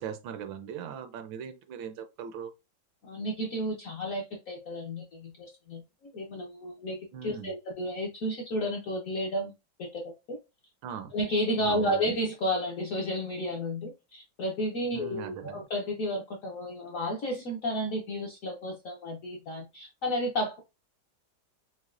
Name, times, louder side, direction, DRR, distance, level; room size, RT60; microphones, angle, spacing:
voice 1, 0.0-2.5 7.1-7.5 10.8-11.1 11.6-12.1 14.9-15.6, right 8 dB, 80° right, 1.3 m, -40 dB
voice 2, 3.0-9.5 9.8-10.4 11.1-20.6, equal, 65° left, 0.8 m, -32 dB
6.1 x 2.1 x 2.4 m
omnidirectional pair, 2.2 m